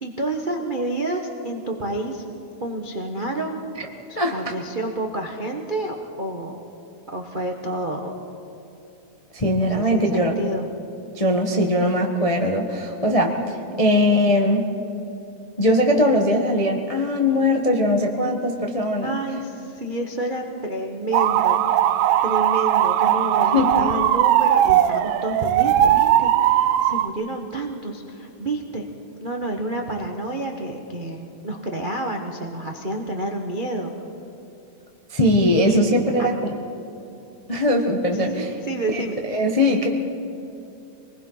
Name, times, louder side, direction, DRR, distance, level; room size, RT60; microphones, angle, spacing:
voice 1, 0.0-2.2 2.6-3.6 4.1-6.6 7.1-8.1 9.5-10.7 13.4-13.8 19.0-21.6 21.8-21.9 22.2-28.8 29.2-33.9 35.6-36.3 38.7-39.1, right 2 dB, 60° right, 2 dB, 0.5 m, -29 dB
voice 2, 4.1-4.5 9.3-10.4 11.1-14.7 15.6-19.2 23.5-23.9 35.1-36.5 37.5-38.5 38.9-39.0 39.3-39.9, left 1 dB, 40° left, 1 dB, 0.5 m, -20 dB
sound 1, 21.1-27.1, right 11 dB, 75° right, 1.9 m, -19 dB
26.5 x 20.5 x 5.7 m, 2.8 s
omnidirectional pair, 3.3 m